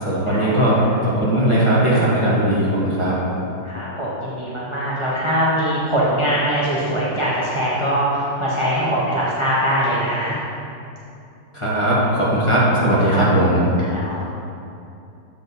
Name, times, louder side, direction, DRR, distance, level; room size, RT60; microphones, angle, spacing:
voice 1, 0.0-3.1 11.5-13.6, right 1 dB, 20° left, -8 dB, 1.2 m, -18 dB
voice 2, 3.6-10.4 13.1-13.5 13.9-14.2, equal, 25° right, -8 dB, 0.6 m, -22 dB
7.8 x 5.0 x 4.1 m, 2.6 s
omnidirectional pair, 2.1 m